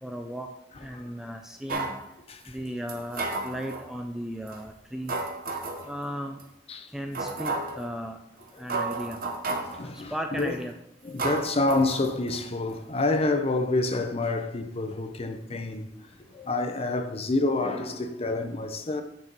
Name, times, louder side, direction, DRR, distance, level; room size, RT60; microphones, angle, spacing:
voice 1, 0.0-0.5 0.8-1.9 2.5-5.2 5.8-6.4 6.9-8.2 8.6-9.2 9.9-10.7, equal, 5° right, 0.4 m, -36 dB
sound 1, 1.7-2.0 2.9-3.9 4.5-4.6 5.1-5.9 6.4-6.5 7.1-7.8 8.4-8.5 8.7-9.8 10.4-10.7 11.2-12.4 12.7-12.8, right 3 dB, 55° right, 0.9 m, -32 dB
voice 2, 9.6-10.6 11.0-15.9 16.3-19.0, left 2 dB, 35° left, 0.7 m, -28 dB
9.2 x 4.4 x 4.0 m
head